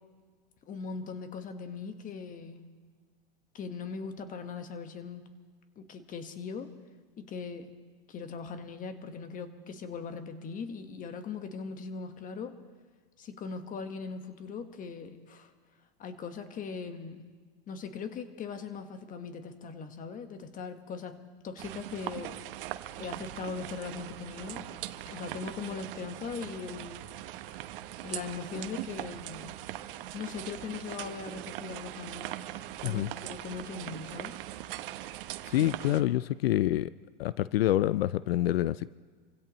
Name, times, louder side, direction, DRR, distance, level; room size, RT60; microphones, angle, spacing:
voice 1, 0.7-2.6 3.5-5.3 5.8-6.7 7.2-7.7 8.1-12.6 13.2-15.5 16.0-17.3 17.7-21.2 21.4-22.4 23.0-24.7 25.0-27.0 28.0-29.6 30.1-32.5 32.8-34.4 35.6-36.1, left 5 dB, 30° left, 8 dB, 1.4 m, -40 dB
sound 1, 21.6-36.0, right 14 dB, 65° right, 1.0 m, -41 dB
voice 2, 35.5-36.9 37.2-39.0, left 14 dB, 85° left, 17 dB, 0.5 m, -27 dB
27.5 x 16.0 x 3.1 m, 1.5 s
hypercardioid pair, 120°, 29 cm